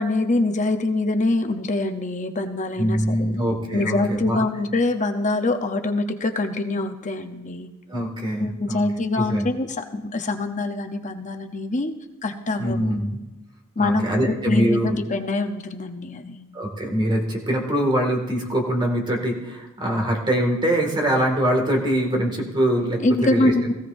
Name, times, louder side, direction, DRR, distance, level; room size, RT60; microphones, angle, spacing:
voice 1, 0.0-3.4 3.7-7.7 8.4-12.0 12.2-12.9 13.8-16.5 23.0-23.7, left 2 dB, 35° left, 6 dB, 0.7 m, -24 dB
voice 2, 2.8-4.5 7.9-8.8 9.2-9.4 12.6-13.2 13.8-15.0 16.5-23.0 23.3-23.7, equal, 20° right, 1 dB, 2.1 m, -23 dB
18.0 x 15.5 x 2.6 m, 1.1 s
head